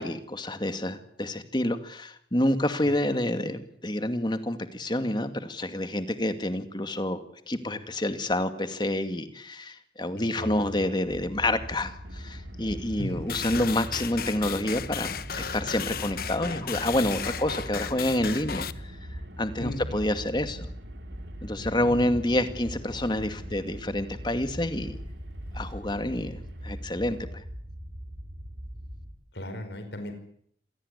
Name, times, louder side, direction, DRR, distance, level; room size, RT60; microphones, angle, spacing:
voice 1, 0.0-18.9 19.4-20.7 21.4-25.0 25.5-27.4, left 1 dB, 25° left, 9 dB, 2.2 m, -28 dB
voice 2, 10.2-10.9 13.0-13.3 19.6-20.0 21.6-22.2 29.3-30.1, left 1 dB, 75° left, 7 dB, 4.9 m, -37 dB
sound 1, 11.0-29.1, equal, 65° right, 6.5 m, -41 dB
Car, 12.0-27.2, right 1 dB, 90° right, 3.9 m, -48 dB
sound 2, 13.3-18.7, left 7 dB, 55° left, 1.1 m, -35 dB
27.5 x 18.0 x 10.0 m, 0.65 s
head